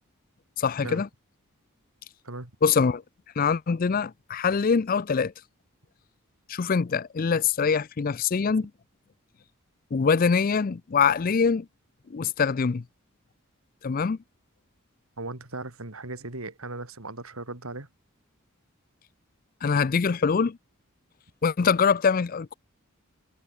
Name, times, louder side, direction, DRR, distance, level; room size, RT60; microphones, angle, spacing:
voice 1, 0.6-1.1 2.6-3.0 3.4-5.3 6.5-8.7 9.9-11.7 12.1-12.8 13.8-14.2 19.6-20.6 21.4-22.5, left 5 dB, 40° left, 0.4 m, -24 dB
voice 2, 15.2-17.9, right 2 dB, 80° right, 3.7 m, -37 dB
head